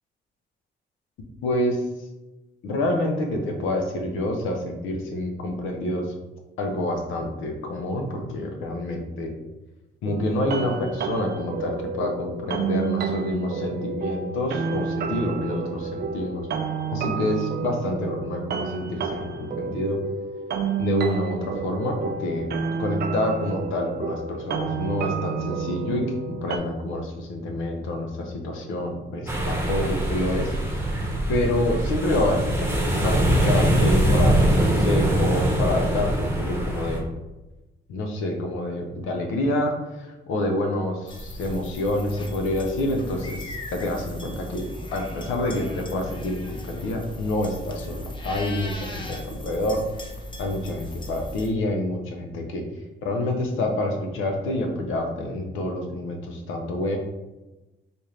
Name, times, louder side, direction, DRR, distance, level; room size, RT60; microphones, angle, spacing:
voice 1, 1.4-1.8 2.6-6.1 6.6-9.3 10.0-16.5 16.9-20.0 20.8-22.5 22.8-30.5 31.3-37.1 37.9-49.8 50.4-52.7 53.0-57.0, left 1 dB, 85° left, 3 dB, 0.8 m, -27 dB
sound 1, 10.1-26.6, right 6 dB, 55° right, 0.4 m, -30 dB
sound 2, 29.3-37.0, right 1 dB, 10° right, 0.9 m, -22 dB
sound 3, 41.1-51.5, left 1 dB, 25° left, 0.8 m, -37 dB
4.3 x 2.5 x 3.2 m, 1.0 s
cardioid pair, 90°, 20 cm